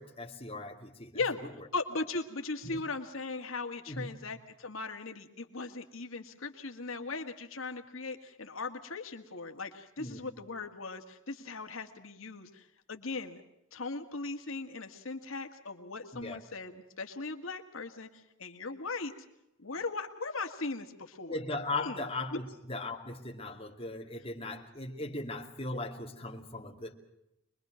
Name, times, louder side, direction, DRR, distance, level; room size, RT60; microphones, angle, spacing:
voice 1, 0.0-1.2 2.6-2.8 3.9-4.1 10.0-10.3 16.1-16.4 21.3-26.9, left 2 dB, 25° left, 0 dB, 2.3 m, -38 dB
voice 2, 1.7-13.4 13.7-19.1 19.6-21.4 21.8-22.4, left 3 dB, 80° left, 5 dB, 1.9 m, -38 dB
25.0 x 22.0 x 6.4 m, 0.85 s
head